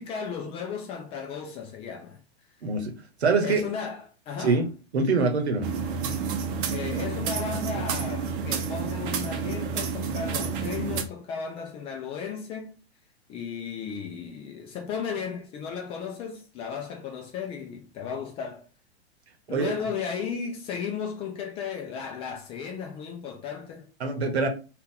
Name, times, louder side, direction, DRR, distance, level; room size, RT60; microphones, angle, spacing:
voice 1, 0.0-2.2 3.4-4.6 6.7-12.8 13.3-18.7 19.5-23.9, left 6 dB, 20° left, 0.3 m, -35 dB
voice 2, 2.6-2.9 3.2-3.6 4.4-5.7 19.5-19.7 24.0-24.5, right 4 dB, 80° right, 0.9 m, -24 dB
sound 1, 5.6-11.0, right 5 dB, 55° right, 0.6 m, -30 dB
2.6 x 2.4 x 3.6 m
hypercardioid pair, 110°, 32 cm